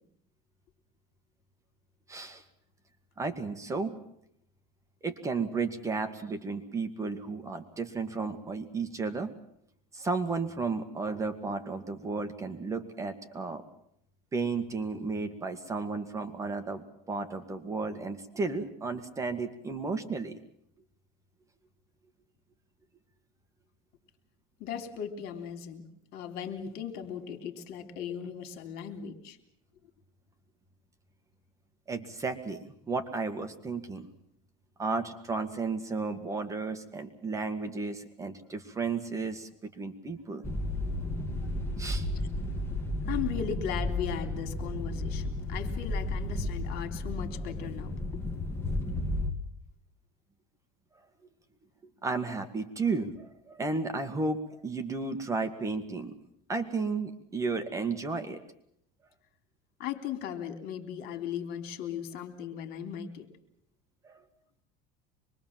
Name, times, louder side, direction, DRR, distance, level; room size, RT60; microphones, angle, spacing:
voice 1, 2.1-2.4 3.2-4.0 5.0-9.3 9.9-13.6 14.3-20.4 31.9-34.1 34.8-40.5 41.8-42.1 52.0-56.1 56.5-58.4 64.0-64.2, right 4 dB, 15° right, 7 dB, 1.9 m, -33 dB
voice 2, 24.6-25.8 26.1-29.4 43.1-48.2 52.4-52.5 59.8-63.3, left 8 dB, 55° left, 8 dB, 3.6 m, -37 dB
sound 1, 40.4-49.3, left 1 dB, 15° left, 2.5 m, -33 dB
25.0 x 22.5 x 7.5 m, 0.73 s
cardioid pair, 145°, 19 cm